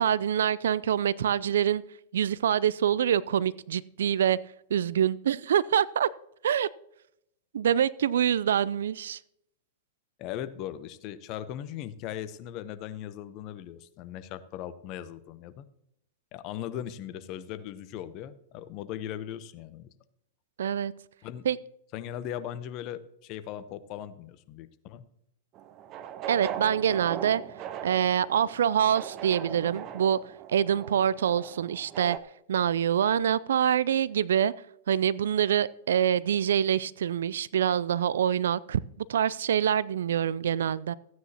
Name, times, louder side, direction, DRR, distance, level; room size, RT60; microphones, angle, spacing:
voice 1, 0.0-1.8 2.1-4.4 4.7-6.1 6.4-6.7 7.5-9.2 20.6-20.9 21.5-21.6 26.3-27.4 27.8-30.2 30.5-32.2 32.5-34.5 34.9-40.9, right 9 dB, 75° right, 0.4 m, -25 dB
voice 2, 10.2-15.7 16.3-19.9 21.2-21.4 21.9-25.0, left 11 dB, 45° left, 0.9 m, -38 dB
sound 1, 25.6-32.2, right 9 dB, 40° right, 0.8 m, -39 dB
14.5 x 9.4 x 2.9 m
hypercardioid pair, 105°, 0 cm